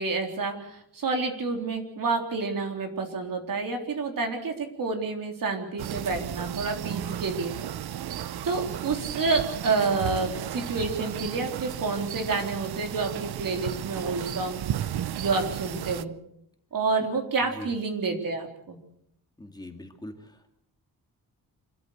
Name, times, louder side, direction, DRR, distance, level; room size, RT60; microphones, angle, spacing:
voice 1, 0.0-7.5 8.4-14.6 15.2-16.1 16.7-18.8, right 4 dB, 60° right, 4 dB, 3.7 m, -29 dB
sound 1, 5.8-16.0, right 11 dB, 80° right, 0.8 m, -34 dB
voice 2, 19.4-20.5, left 1 dB, 10° left, 4 dB, 2.1 m, -42 dB
26.5 x 13.5 x 8.1 m, 0.76 s
wide cardioid pair, 155°, 37 cm